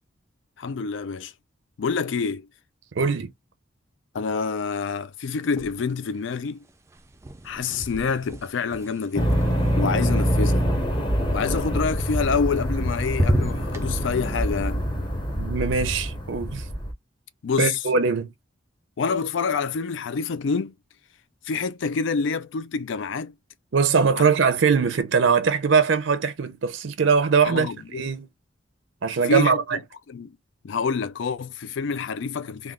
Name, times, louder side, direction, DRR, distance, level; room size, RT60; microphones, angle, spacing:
voice 1, 0.6-1.3 1.8-2.5 4.1-6.6 7.4-9.4 9.8-10.6 11.3-14.8 17.4-17.8 19.0-20.7 21.5-23.3 24.2-24.3 27.4-28.0 29.3-29.8 30.1-30.3 30.6-32.7, left 5 dB, 70° left, 0.4 m, -27 dB
voice 2, 3.0-3.3 15.4-16.6 17.6-18.3 23.7-27.7 27.9-28.3 29.0-29.8, right 5 dB, 75° right, 0.5 m, -21 dB
sound 1, 5.5-6.2 6.4-10.6 12.2-12.8 13.1-13.9, right 1 dB, 15° right, 0.3 m, -31 dB
sound 2, 9.1-16.9, equal, 25° left, 0.8 m, -25 dB
3.5 x 2.3 x 2.3 m
head